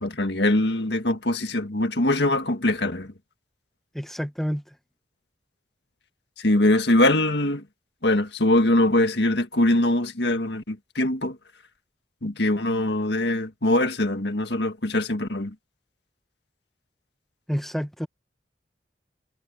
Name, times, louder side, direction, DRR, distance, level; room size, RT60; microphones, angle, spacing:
voice 1, 0.0-3.1 6.4-7.6 8.0-11.4 12.2-15.5, left 1 dB, 70° left, 1.8 m, -22 dB
voice 2, 3.9-4.7 17.5-18.1, equal, ahead, 1.3 m, -29 dB
head